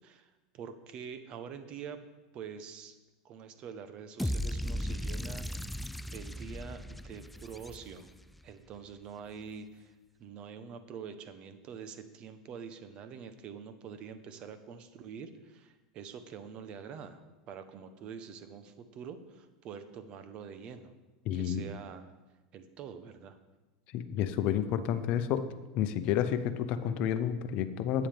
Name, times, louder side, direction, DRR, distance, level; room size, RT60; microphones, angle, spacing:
voice 1, 0.0-2.0 2.3-3.0 3.2-5.4 6.1-8.1 8.4-9.9 10.2-17.2 17.5-20.9 21.3-22.1 22.5-23.4, right 7 dB, 45° right, 10 dB, 1.0 m, -45 dB
sound 1, 4.2-8.3, equal, 5° left, 0.3 m, -36 dB
voice 2, 21.3-21.6 23.9-25.5 25.7-28.1, left 9 dB, 55° left, 11 dB, 0.8 m, -30 dB
13.0 x 9.1 x 3.5 m, 1.1 s
supercardioid pair, 110°, 2 cm